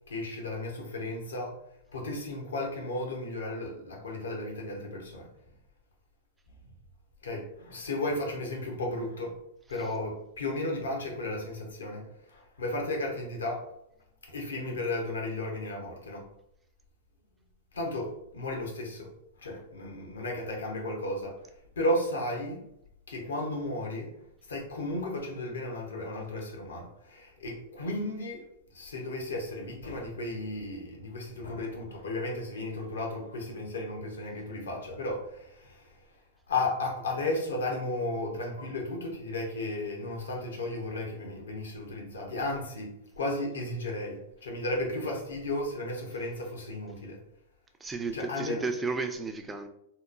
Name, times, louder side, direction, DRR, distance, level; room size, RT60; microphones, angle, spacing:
voice 1, 0.1-1.6 1.9-5.3 7.2-9.3 9.7-13.7 14.3-16.2 17.7-19.1 19.4-21.4 21.8-22.6 23.1-28.4 28.7-35.9 36.5-47.2 48.1-48.7, left 1 dB, 75° left, 1 dB, 0.7 m, -34 dB
voice 2, 47.8-49.7, right 4 dB, 15° right, 6 dB, 0.3 m, -33 dB
2.9 x 2.0 x 2.4 m, 0.76 s
figure-of-eight pair, 100°, 0 cm